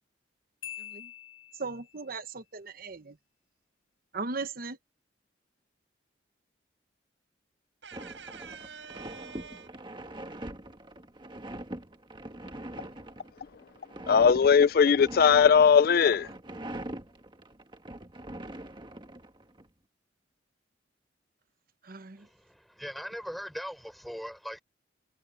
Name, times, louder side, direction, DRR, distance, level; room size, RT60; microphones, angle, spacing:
Marimba xylophone, 0.6-2.0, left 12 dB, 80° left, 0.8 m, -44 dB
voice 1, 0.8-1.1 1.6-3.2 4.1-4.8 21.8-22.3, right 4 dB, 50° right, 1.0 m, -38 dB
voice 2, 7.8-9.9, right 6 dB, 75° right, 7.9 m, -46 dB
sound 1, 7.9-19.7, right 1 dB, 25° right, 1.7 m, -43 dB
voice 3, 14.1-16.3, left 6 dB, 50° left, 0.4 m, -19 dB
voice 4, 22.2-24.6, equal, ahead, 5.9 m, -40 dB
head